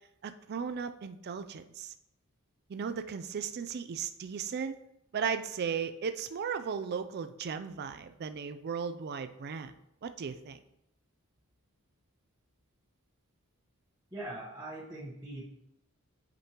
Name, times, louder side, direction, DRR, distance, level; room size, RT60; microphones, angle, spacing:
voice 1, 0.2-1.9 2.7-4.8 5.1-9.7 10.0-10.6, right 6 dB, 45° right, 9 dB, 0.4 m, -36 dB
voice 2, 14.1-15.4, right 1 dB, 10° right, -8 dB, 1.1 m, -41 dB
8.5 x 5.2 x 2.9 m, 0.82 s
head